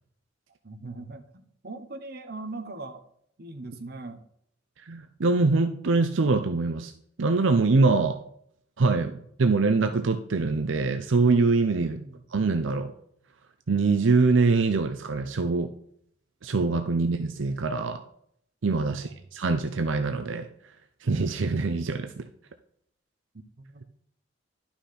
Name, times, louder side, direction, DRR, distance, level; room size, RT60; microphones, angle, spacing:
voice 1, 0.6-3.0 3.4-4.2 8.9-9.2 11.8-12.2 17.0-17.1 18.9-19.1 23.3-23.8, right 2 dB, 55° right, 8 dB, 1.0 m, -41 dB
voice 2, 4.9-6.9 7.2-8.2 8.8-9.1 9.4-12.0 12.3-12.9 13.7-15.7 16.4-18.0 18.6-20.5 21.0-22.2, right 3 dB, 80° right, 8 dB, 0.6 m, -24 dB
11.5 x 5.8 x 4.3 m, 0.68 s
head